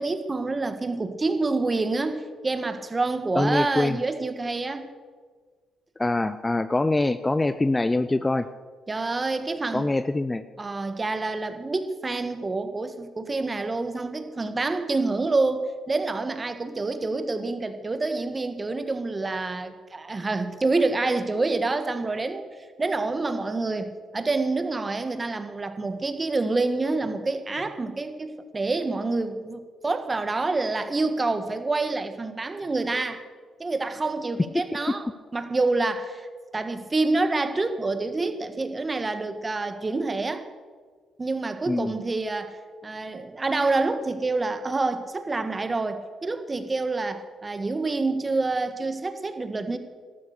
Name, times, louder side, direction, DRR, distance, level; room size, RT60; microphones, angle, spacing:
voice 1, 0.0-4.9 8.9-9.9 10.6-22.4 22.8-33.2 33.6-36.3 36.5-40.4 41.2-49.8, right 3 dB, 25° right, 9 dB, 1.5 m, -27 dB
voice 2, 3.3-4.0 6.0-8.5 9.7-10.4 41.7-42.0, left 2 dB, 15° left, 13 dB, 0.5 m, -24 dB
13.0 x 13.0 x 6.7 m, 1.5 s
cardioid pair, 90°, 0 cm